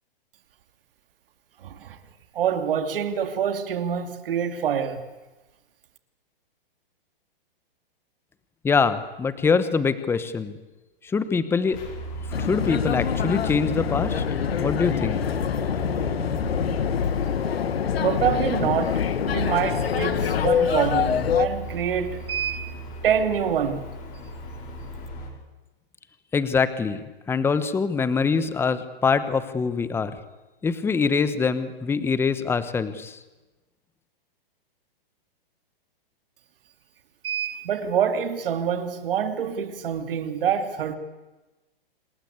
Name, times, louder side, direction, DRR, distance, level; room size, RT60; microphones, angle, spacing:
voice 1, 1.6-2.0 2.3-5.0 18.0-22.7 23.0-23.9 37.2-41.0, right 8 dB, 65° right, 3.0 m, -26 dB
voice 2, 8.6-10.6 11.0-11.8 12.4-14.2 14.6-15.2 26.3-27.0 27.3-30.1 30.6-33.2, left 5 dB, 10° left, 1.1 m, -24 dB
sound 1, 11.7-25.3, right 3 dB, 30° left, 6.0 m, -37 dB
sound 2, 12.3-21.5, left 8 dB, 90° left, 1.8 m, -25 dB
27.5 x 19.5 x 8.3 m
hypercardioid pair, 155°, 29 cm